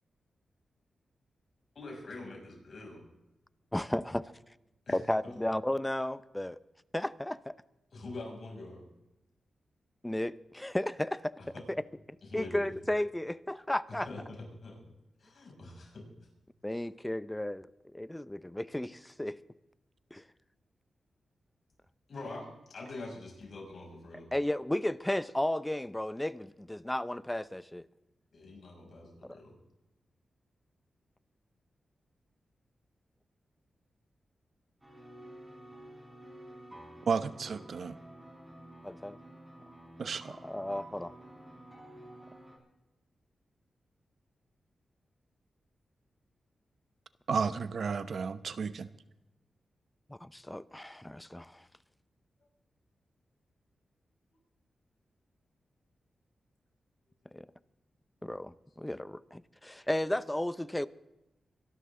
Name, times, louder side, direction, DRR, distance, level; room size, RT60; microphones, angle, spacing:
voice 1, 1.7-3.0 4.9-5.0 5.2-5.3 7.9-8.8 11.5-11.6 12.2-12.7 14.0-14.8 15.2-16.1 22.1-24.3 28.3-29.5 57.2-57.3, left 2 dB, 65° left, 6.9 m, -44 dB
voice 2, 3.7-4.3 4.9-6.6 6.9-7.6 10.0-11.3 11.7-11.8 12.3-14.1 16.6-17.7 17.9-19.4 20.1-20.2 24.3-27.9 29.2-29.4 38.8-39.2 40.4-41.1 50.1-51.7 57.3-57.5 58.2-60.9, left 1 dB, 10° left, 0.6 m, -34 dB
sound 1, 34.8-42.6, right 1 dB, 10° right, 6.4 m, -50 dB
voice 3, 37.1-38.0 40.0-40.4 47.3-48.9, right 5 dB, 70° right, 0.8 m, -32 dB
24.5 x 12.5 x 3.8 m
cardioid pair, 60°, 0 cm